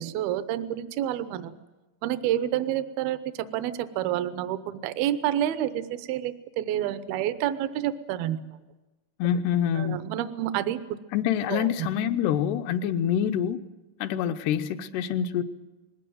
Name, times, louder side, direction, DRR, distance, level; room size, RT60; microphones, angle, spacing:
voice 1, 0.0-1.6 2.0-8.4 9.8-11.0 11.5-11.9, right 12 dB, 75° right, 13 dB, 2.6 m, -29 dB
voice 2, 9.2-10.0 11.1-13.6 14.0-15.4, left 9 dB, 80° left, 10 dB, 2.9 m, -26 dB
20.5 x 17.5 x 9.2 m, 1.1 s
omnidirectional pair, 4.7 m